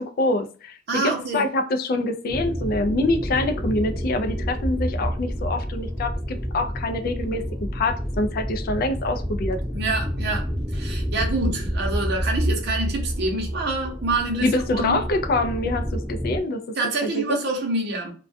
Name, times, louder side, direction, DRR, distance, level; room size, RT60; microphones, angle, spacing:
voice 1, 0.0-9.6 14.4-16.6 17.0-17.4, left 2 dB, 50° left, 0.3 m, -25 dB
voice 2, 0.9-1.4 9.7-10.4 10.7-15.0 16.8-18.1, right 2 dB, 55° right, 0.7 m, -26 dB
sound 1, 2.3-16.4, equal, 5° right, 0.6 m, -29 dB
2.2 x 2.2 x 2.5 m
head